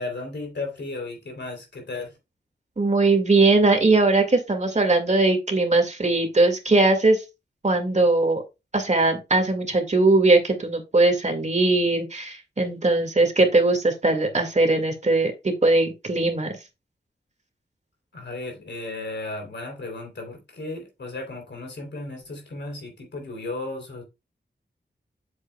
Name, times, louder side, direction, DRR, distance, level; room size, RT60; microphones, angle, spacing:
voice 1, 0.0-2.1 18.1-24.0, left 2 dB, 75° left, 3.3 m, -34 dB
voice 2, 2.8-7.2 7.6-8.4 8.7-16.5, right 2 dB, 40° right, 2.0 m, -20 dB
7.9 x 7.5 x 2.3 m
wide cardioid pair, 75°, 18 cm